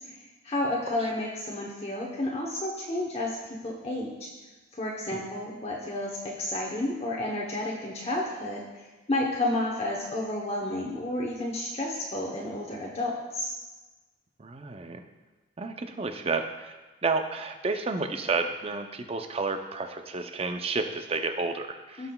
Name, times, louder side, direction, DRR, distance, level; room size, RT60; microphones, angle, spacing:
voice 1, 0.0-3.4 3.6-4.3 4.7-13.5 22.0-22.1, left 1 dB, 30° left, -2 dB, 0.9 m, -31 dB
voice 2, 14.4-15.0 15.6-16.7 17.0-22.1, right 3 dB, 30° right, 6 dB, 0.5 m, -31 dB
17.5 x 5.8 x 2.3 m, 1.2 s
head